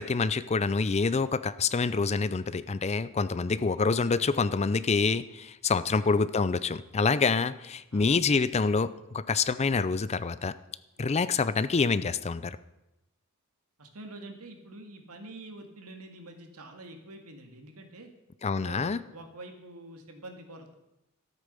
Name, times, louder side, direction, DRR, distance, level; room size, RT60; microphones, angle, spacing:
voice 1, 0.0-10.5 11.0-12.6 18.4-19.0, left 4 dB, 30° left, 15 dB, 0.5 m, -27 dB
voice 2, 13.8-18.1 18.6-20.7, right 2 dB, 85° right, 5 dB, 2.0 m, -46 dB
13.5 x 8.3 x 6.8 m, 0.93 s
head